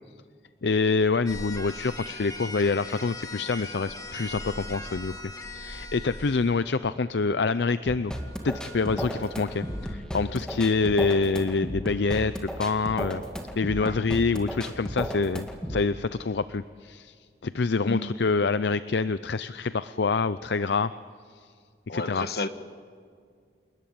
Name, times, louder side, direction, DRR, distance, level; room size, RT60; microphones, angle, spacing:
voice 1, 0.6-5.1 5.5-8.1 8.4-13.2 13.6-17.1 17.4-20.9 21.9-22.2, left 4 dB, 75° left, 14 dB, 0.6 m, -26 dB
sound 1, 1.3-6.6 8.1-9.9, left 1 dB, 20° left, 1.8 m, -40 dB
sound 2, 7.9-15.9, equal, 5° left, 2.1 m, -34 dB
voice 2, 17.9-18.3 21.9-22.5, left 2 dB, 60° left, 9 dB, 1.4 m, -32 dB
28.5 x 20.5 x 8.7 m, 2.1 s
head